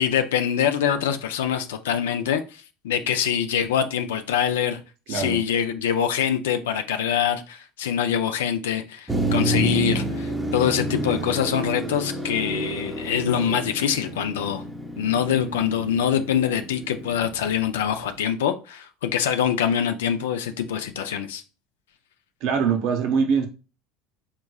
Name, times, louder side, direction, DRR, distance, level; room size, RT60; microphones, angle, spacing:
voice 1, 0.0-4.8 5.1-14.6 15.0-21.4, left 8 dB, 85° left, 0.3 m, -24 dB
voice 2, 5.1-5.4 22.4-23.5, right 6 dB, 65° right, 0.7 m, -22 dB
Motor vehicle (road), 9.1-18.1, right 2 dB, 10° right, 0.6 m, -29 dB
3.6 x 2.9 x 2.3 m
hypercardioid pair, 85°, 0 cm